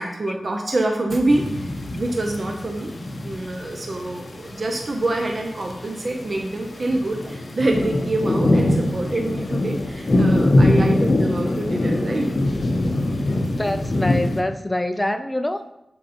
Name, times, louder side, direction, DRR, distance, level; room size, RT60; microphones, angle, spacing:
voice 1, 0.0-2.9 3.2-12.3, right 2 dB, 45° right, 3 dB, 0.8 m, -26 dB
sound 1, 1.3-14.4, left 1 dB, 45° left, 0.9 m, -23 dB
voice 2, 13.6-15.6, left 1 dB, 10° left, 9 dB, 0.5 m, -25 dB
7.3 x 4.0 x 4.3 m, 0.86 s
cardioid pair, 70°, 0 cm